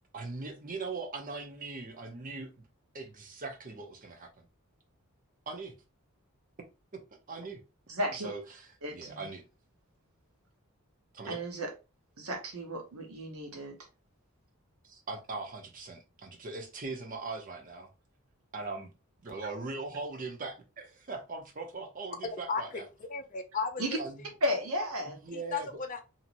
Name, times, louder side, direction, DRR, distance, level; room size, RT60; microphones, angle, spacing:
voice 1, 0.1-2.5 2.9-4.5 5.5-5.8 6.9-7.0 7.3-7.6 8.2-8.6 8.9-9.5 11.1-11.4 14.8-17.9 18.5-18.9 19.2-22.8 24.0-24.2 25.0-25.8, right 3 dB, 40° right, 0.7 m, -40 dB
voice 2, 7.9-8.3 8.8-9.2 11.3-11.7 12.2-13.7 23.8-24.0 24.4-25.2, equal, 85° right, 1.0 m, -33 dB
voice 3, 22.2-22.8 23.1-23.8 25.3-26.0, left 4 dB, 40° left, 0.5 m, -35 dB
2.9 x 2.8 x 2.5 m
head